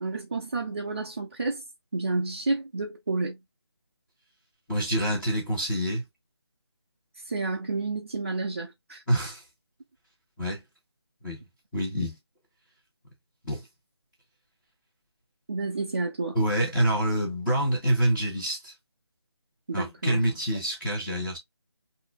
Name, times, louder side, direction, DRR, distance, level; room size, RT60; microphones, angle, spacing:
voice 1, 0.0-1.6 1.9-3.4 7.3-9.0 15.5-16.4 19.7-20.2, right 3 dB, 30° right, 0.7 m, -30 dB
voice 2, 4.7-6.0 9.1-9.4 10.4-10.6 11.2-11.4 11.7-12.2 13.4-13.6 16.3-18.7 19.7-21.4, right 1 dB, 5° left, 1.6 m, -26 dB
5.7 x 2.8 x 2.3 m
figure-of-eight pair, 170°, 14 cm